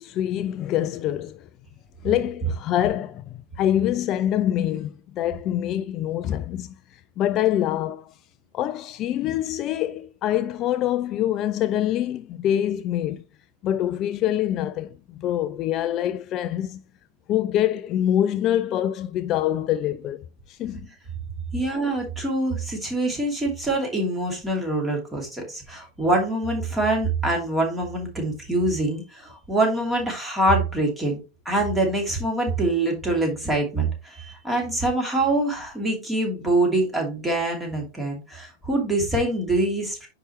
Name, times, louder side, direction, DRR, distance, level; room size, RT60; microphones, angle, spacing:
voice 1, 0.0-1.5 2.0-8.2 8.5-13.2 13.6-16.8 17.3-20.9, left 11 dB, 35° left, 0.4 m, -25 dB
voice 2, 21.5-31.2 31.4-40.1, right 2 dB, 10° right, 2.8 m, -24 dB
9.7 x 4.8 x 3.1 m
figure-of-eight pair, 90°, 0 cm